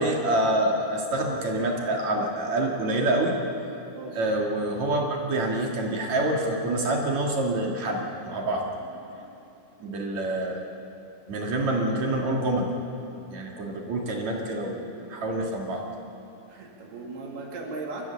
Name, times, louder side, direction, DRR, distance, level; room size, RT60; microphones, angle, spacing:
voice 1, 0.0-3.3 4.2-8.0 8.3-8.7 9.8-10.6 11.3-12.7 13.3-15.8, right 1 dB, 50° right, 0 dB, 3.0 m, -26 dB
voice 2, 9.1-9.5 10.2-10.3 16.5-18.1, right 3 dB, 85° right, -2 dB, 4.6 m, -38 dB
29.0 x 14.0 x 7.0 m, 2.8 s
omnidirectional pair, 4.4 m